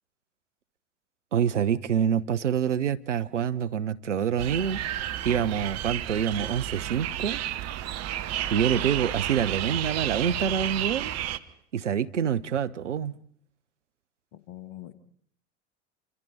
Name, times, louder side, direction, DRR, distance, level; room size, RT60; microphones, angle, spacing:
voice 1, 1.3-4.8 5.2-7.4 8.5-11.1 11.7-13.1, right 8 dB, 85° right, 0.9 m, -26 dB
sound 1, 4.4-11.4, right 12 dB, 45° right, 1.3 m, -31 dB
voice 2, 14.3-14.9, left 12 dB, 65° left, 2.2 m, -43 dB
27.5 x 26.0 x 4.3 m
figure-of-eight pair, 75°, 36 cm